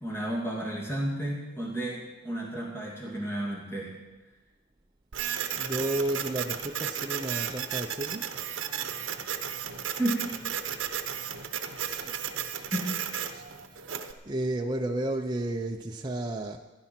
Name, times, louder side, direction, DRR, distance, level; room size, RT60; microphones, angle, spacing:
voice 1, 0.0-3.9 10.0-10.3 11.6-11.8 12.7-12.9, right 1 dB, 10° left, -3 dB, 2.5 m, -32 dB
Printer, 5.1-14.1, right 8 dB, 60° right, 1.0 m, -34 dB
voice 2, 5.5-8.2 11.9-12.1 12.6-12.7 13.3-13.4 13.7-16.6, right 1 dB, 20° right, 1 dB, 0.6 m, -32 dB
15.5 x 10.5 x 6.0 m, 1.2 s
head